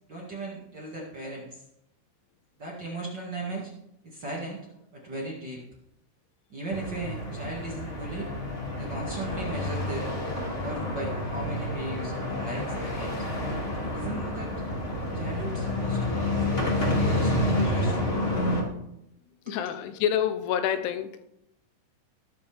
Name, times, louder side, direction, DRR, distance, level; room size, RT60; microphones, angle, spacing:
voice 1, 0.1-1.6 2.6-3.7 4.0-4.7 4.9-5.6 6.5-8.3 8.8-10.1 10.6-13.3 13.9-14.5 15.1-18.0 19.5-19.7, right 2 dB, 65° right, -3 dB, 1.0 m, -37 dB
sound 1, 6.7-18.6, left 1 dB, 55° left, 0.6 m, -29 dB
voice 2, 19.5-21.3, left 9 dB, 80° left, 9 dB, 3.2 m, -28 dB
20.0 x 9.7 x 3.5 m, 0.83 s
omnidirectional pair, 5.7 m